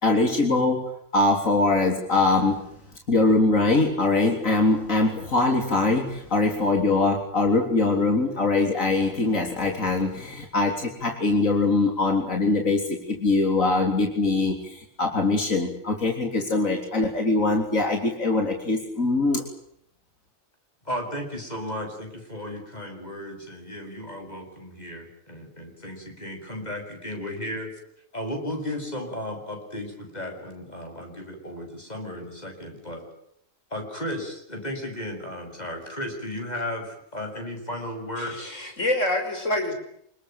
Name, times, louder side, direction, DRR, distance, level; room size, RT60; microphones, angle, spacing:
voice 1, 0.0-2.7 3.1-19.4, left 3 dB, 90° left, 3 dB, 4.0 m, -22 dB
voice 2, 20.8-27.7 28.1-33.1 33.7-38.5, left 1 dB, 30° left, 4 dB, 8.1 m, -34 dB
voice 3, 38.2-39.7, left 1 dB, 70° left, 5 dB, 6.1 m, -26 dB
28.5 x 20.5 x 9.0 m, 0.71 s
omnidirectional pair, 1.3 m